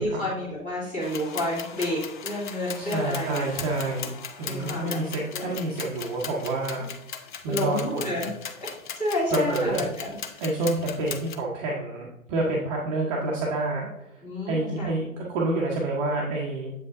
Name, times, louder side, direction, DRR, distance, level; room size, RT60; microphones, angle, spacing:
voice 1, 0.0-3.5 4.5-5.0 5.3-5.5 7.5-8.3 9.0-10.2 14.2-14.9, left 1 dB, 15° left, -6 dB, 2.3 m, -29 dB
sound 1, 1.0-11.3, left 7 dB, 35° left, 0.5 m, -38 dB
voice 2, 2.8-4.1 4.4-6.9 7.4-8.2 9.3-9.9 10.4-13.9 14.5-16.7, right 2 dB, 25° right, -4 dB, 0.8 m, -28 dB
7.5 x 5.1 x 2.5 m, 0.83 s
figure-of-eight pair, 115°, 42 cm